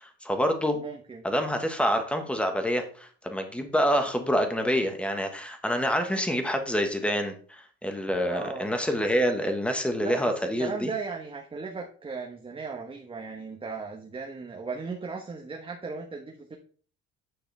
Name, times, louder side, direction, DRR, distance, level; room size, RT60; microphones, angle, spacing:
voice 1, 0.0-0.8 1.2-10.9, equal, 5° left, 5 dB, 1.4 m, -27 dB
voice 2, 0.8-1.2 8.3-8.7 10.0-10.3 10.6-16.6, right 4 dB, 20° right, 0 dB, 1.2 m, -36 dB
9.2 x 6.1 x 3.4 m, 0.43 s
cardioid pair, 120°, 30 cm